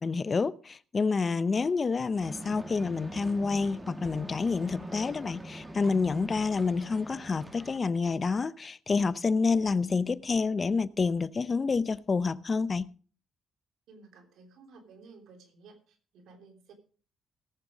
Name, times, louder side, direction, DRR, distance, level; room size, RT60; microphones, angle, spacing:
voice 1, 0.0-12.9, left 4 dB, 35° left, 0.7 m, -28 dB
sound 1, 2.2-7.8, right 1 dB, 15° right, 1.9 m, -43 dB
voice 2, 13.9-16.7, right 4 dB, 80° right, 3.2 m, -54 dB
18.0 x 7.0 x 5.1 m
cardioid pair, 90°, 0 cm